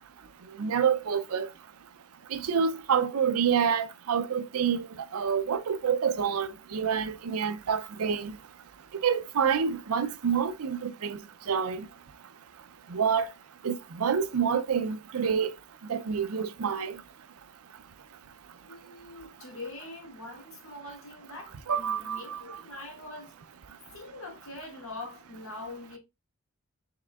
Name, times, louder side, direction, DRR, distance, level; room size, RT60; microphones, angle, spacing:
voice 1, 0.6-1.5 2.3-4.9 5.1-8.3 9.0-11.2 11.5-11.9 12.9-13.3 13.6-15.5 15.9-16.9 21.7-22.4, right 7 dB, 90° right, 0.5 m, -27 dB
voice 2, 18.7-23.3 23.9-26.0, left 2 dB, 75° left, 1.9 m, -43 dB
5.5 x 3.6 x 2.3 m
head